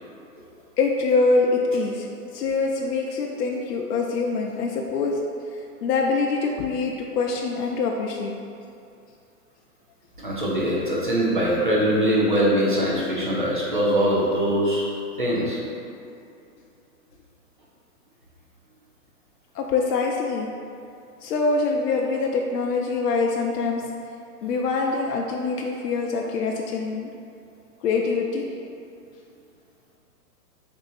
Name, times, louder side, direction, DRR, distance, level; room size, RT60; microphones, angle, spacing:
voice 1, 0.8-5.2 5.5-8.3 19.5-20.5 21.2-23.9 24.4-27.1 27.8-28.5, left 4 dB, 80° left, 0 dB, 0.5 m, -24 dB
voice 2, 10.2-14.8 15.2-15.6 24.4-24.5, equal, 35° right, -6 dB, 0.4 m, -22 dB
3.6 x 2.7 x 4.0 m, 2.5 s
hypercardioid pair, 175°, 48 cm